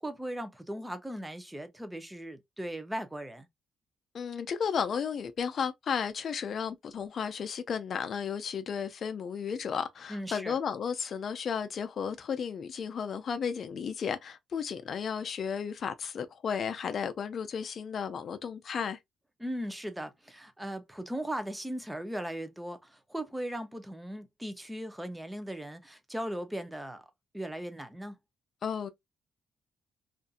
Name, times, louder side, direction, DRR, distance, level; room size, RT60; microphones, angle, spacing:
voice 1, 0.0-3.5 10.1-10.6 19.4-27.0 27.3-28.1, right 1 dB, 5° right, 0.6 m, -38 dB
voice 2, 4.1-19.0 28.6-28.9, left 7 dB, 55° left, 0.4 m, -33 dB
2.6 x 2.5 x 2.3 m
cardioid pair, 90°, 0 cm